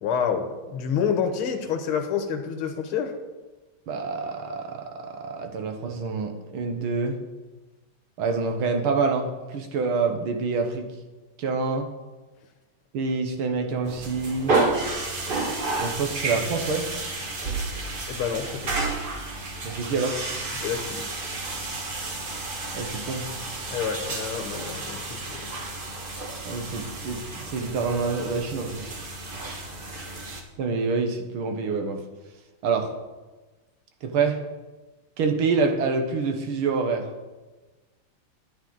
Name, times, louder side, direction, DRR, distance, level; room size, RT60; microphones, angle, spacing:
voice 1, 0.0-3.1 18.1-18.9 20.6-21.0 23.7-25.4, left 7 dB, 85° left, 6 dB, 1.9 m, -28 dB
voice 2, 3.9-7.2 8.2-10.9 11.4-11.9 12.9-14.6 15.8-16.8 19.6-20.2 22.7-23.3 26.5-29.0 30.6-32.0 32.6-32.9 34.0-34.4 35.2-37.1, right 4 dB, 75° right, 4 dB, 1.9 m, -27 dB
sound 1, 13.8-30.4, right 3 dB, 45° right, 0.7 m, -31 dB
10.5 x 8.9 x 3.9 m, 1.2 s
omnidirectional pair, 2.3 m